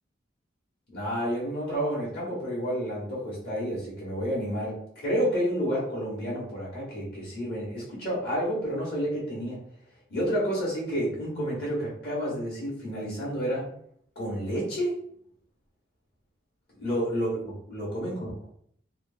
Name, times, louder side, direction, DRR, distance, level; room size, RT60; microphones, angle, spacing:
voice 1, 0.9-9.6 10.1-13.7 14.1-14.9 16.8-18.3, equal, 55° left, -6 dB, 1.1 m, -30 dB
2.9 x 2.0 x 2.5 m, 0.66 s
head